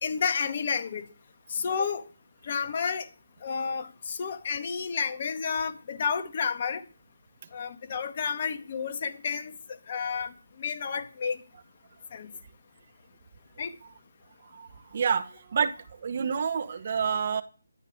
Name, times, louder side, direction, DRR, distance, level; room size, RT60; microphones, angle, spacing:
voice 1, 0.0-1.0 1.5-2.0 2.4-3.1 3.4-6.8 7.5-9.5 9.9-10.3 10.6-11.4 12.1-12.3 13.6-13.7, left 6 dB, 40° left, 1.6 m, -30 dB
voice 2, 14.5-15.7 16.0-17.4, right 6 dB, 45° right, 1.0 m, -28 dB
12.0 x 11.0 x 5.1 m
figure-of-eight pair, 155°, 0 cm